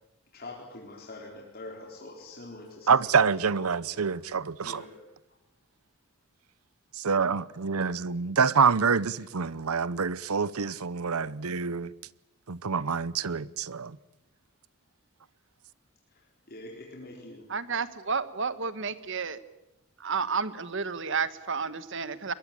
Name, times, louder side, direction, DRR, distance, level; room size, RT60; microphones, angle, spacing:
voice 1, 0.3-4.2 4.6-4.9 8.7-8.9 9.2-9.3 10.7-10.8 16.1-17.5, left 2 dB, 45° left, 4.0 m, -45 dB
voice 2, 2.9-4.8 6.9-11.9 12.5-14.0, right 5 dB, 90° right, 0.8 m, -26 dB
voice 3, 17.5-19.4 20.0-22.3, right 5 dB, 60° right, 1.4 m, -31 dB
22.0 x 22.0 x 8.8 m
head